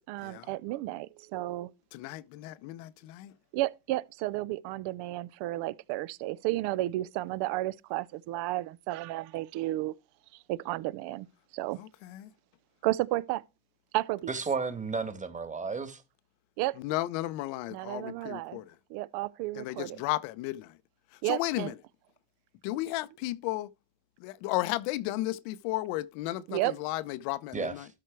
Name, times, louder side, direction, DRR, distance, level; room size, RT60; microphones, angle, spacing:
voice 1, 0.1-1.7 3.5-9.9 10.5-11.3 11.5-11.8 12.8-13.4 13.9-14.3 16.6-16.8 17.7-18.6 18.9-20.0 21.2-21.7 26.5-26.7, right 17 dB, 70° right, 0.6 m, -32 dB
voice 2, 1.9-3.3 11.8-12.3 16.8-18.7 19.6-20.7 21.3-21.7 22.6-23.7 24.2-27.9, left 16 dB, 80° left, 0.8 m, -34 dB
voice 3, 14.3-16.0 27.5-27.9, right 4 dB, 15° right, 1.5 m, -33 dB
12.5 x 4.4 x 4.6 m
supercardioid pair, 115°, 43 cm